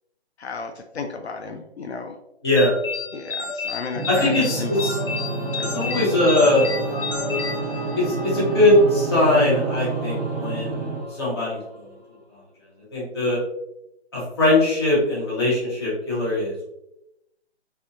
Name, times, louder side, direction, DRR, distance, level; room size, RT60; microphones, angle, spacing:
voice 1, 0.4-2.2 3.1-4.9 5.5-6.1, left 5 dB, 70° left, 4 dB, 0.5 m, -34 dB
sound 1, 2.6-8.3, left 4 dB, 55° left, 0.9 m, -31 dB
sound 2, 3.9-11.0, right 4 dB, 75° right, 1.0 m, -29 dB
voice 2, 4.1-5.0 5.7-6.7 8.0-11.8 12.9-13.4 14.1-16.7, left 1 dB, 25° left, -7 dB, 1.0 m, -21 dB
Singing / Musical instrument, 4.7-12.2, left 1 dB, 20° right, 1.2 m, -35 dB
4.1 x 2.7 x 2.5 m, 0.87 s
hypercardioid pair, 170°, 34 cm